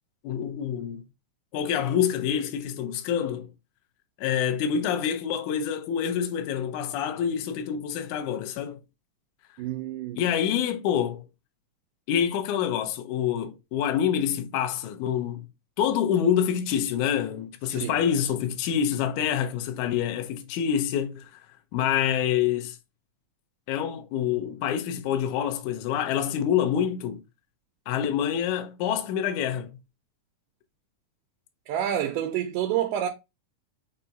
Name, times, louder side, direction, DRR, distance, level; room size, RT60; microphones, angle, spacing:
voice 1, 0.2-1.0 1.5-3.5 4.2-8.8 10.2-11.3 12.1-15.5 15.8-21.3 21.7-22.8 23.7-27.2 27.9-29.7, left 9 dB, 75° left, 1.9 m, -26 dB
voice 2, 9.6-10.3 17.7-18.0 31.7-33.1, right 10 dB, 80° right, 2.2 m, -28 dB
5.5 x 2.2 x 3.9 m
omnidirectional pair, 3.7 m